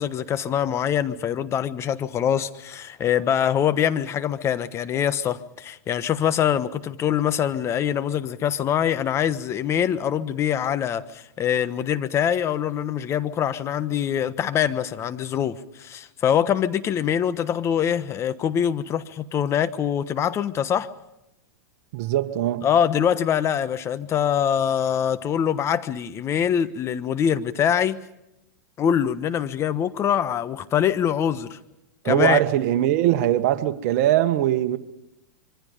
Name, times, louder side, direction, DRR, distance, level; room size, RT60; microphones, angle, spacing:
voice 1, 0.0-20.9 22.6-28.0 28.8-31.6 32.0-32.4, left 9 dB, 30° left, 1.3 m, -24 dB
voice 2, 21.9-22.7 32.0-34.8, right 13 dB, 55° right, 1.5 m, -21 dB
25.5 x 24.0 x 5.3 m
hypercardioid pair, 115°, 9 cm